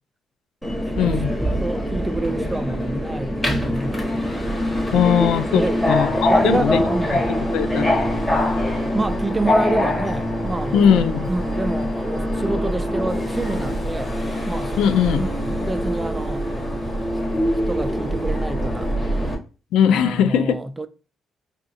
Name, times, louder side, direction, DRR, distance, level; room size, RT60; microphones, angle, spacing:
Subway metro underground, 0.6-19.4, equal, 15° left, 1.2 m, -23 dB
voice 1, 1.0-1.3 4.9-6.8 7.5-8.0 10.7-11.3 14.8-15.2 19.7-20.6, left 8 dB, 85° left, 0.4 m, -19 dB
voice 2, 1.6-4.2 5.5-5.8 6.2-7.4 8.9-14.2 14.5-14.8 15.2-16.4 17.7-18.9 19.9-20.9, right 2 dB, 15° right, 0.4 m, -28 dB
5.0 x 2.3 x 2.6 m
cardioid pair, 90°, 0 cm